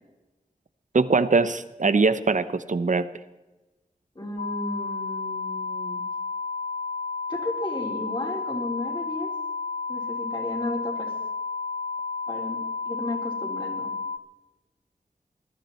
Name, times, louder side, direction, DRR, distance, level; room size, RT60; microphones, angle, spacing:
voice 1, 0.9-3.0, right 4 dB, 60° right, 13 dB, 0.8 m, -22 dB
voice 2, 4.1-6.1 7.3-9.3 9.9-11.1 12.3-12.6 12.9-13.9, left 1 dB, 35° left, -1 dB, 4.4 m, -33 dB
sound 1, 4.4-14.2, left 4 dB, 60° left, 0.5 m, -32 dB
20.0 x 12.5 x 4.4 m, 1.1 s
wide cardioid pair, 60°, 14 cm